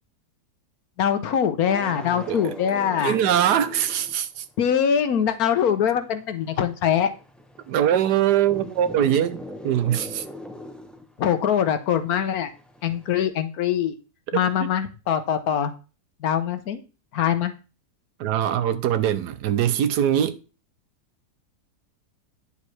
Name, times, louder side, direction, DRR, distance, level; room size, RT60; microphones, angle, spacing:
voice 1, 1.0-3.2 4.6-7.1 11.2-12.5 12.8-13.9 14.3-15.7 16.2-16.8 17.1-17.5, left 8 dB, 65° left, 1.3 m, -23 dB
sound 1, 1.7-4.5 4.8-13.3, left 1 dB, ahead, 0.5 m, -41 dB
voice 2, 3.0-4.4 7.7-10.2 18.2-20.4, right 10 dB, 85° right, 1.3 m, -22 dB
9.7 x 6.8 x 3.2 m
omnidirectional pair, 1.7 m